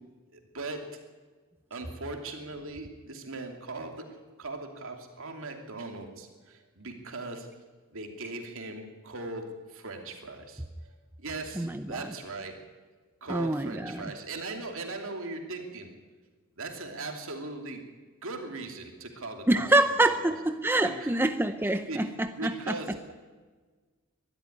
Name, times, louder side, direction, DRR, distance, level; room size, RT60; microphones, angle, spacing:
voice 1, 0.3-1.0 1.7-7.5 7.9-10.9 11.2-12.6 13.2-15.9 16.6-17.8 18.2-19.7 20.1-20.4 20.8-21.1 21.9-22.1 22.3-23.1, right 3 dB, 65° right, 4 dB, 2.7 m, -39 dB
voice 2, 11.6-12.1 13.3-14.0 19.5-23.1, right 1 dB, 10° right, 9 dB, 0.7 m, -26 dB
21.5 x 12.5 x 10.0 m, 1.4 s
head